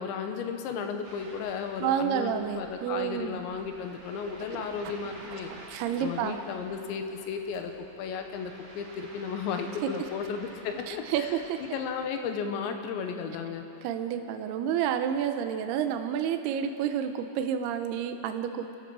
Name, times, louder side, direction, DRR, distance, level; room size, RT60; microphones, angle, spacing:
voice 1, 0.0-5.5 6.0-7.7 8.0-13.6, left 6 dB, 80° left, 5 dB, 3.3 m, -34 dB
Ocean, 1.0-11.9, right 1 dB, 55° right, 6.2 m, -50 dB
voice 2, 1.8-3.4 4.5-4.6 5.5-6.4 10.9-11.6 13.8-18.8, right 9 dB, 75° right, 7 dB, 2.5 m, -30 dB
28.5 x 15.0 x 6.2 m, 2.9 s
omnidirectional pair, 5.3 m